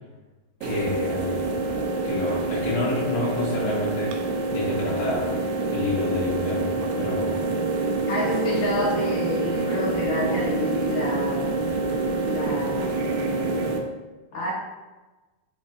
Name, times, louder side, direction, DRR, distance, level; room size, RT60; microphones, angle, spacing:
voice 1, 0.6-1.6 2.0-5.3 5.7-7.4, left 3 dB, 90° left, -5 dB, 1.7 m, -29 dB
sound 1, 0.6-13.8, right 3 dB, 80° right, 2.3 m, -26 dB
voice 2, 8.1-11.6 12.2-13.8 14.3-14.5, left 1 dB, 35° left, -7 dB, 2.0 m, -29 dB
6.2 x 5.7 x 3.1 m, 1.2 s
omnidirectional pair, 5.2 m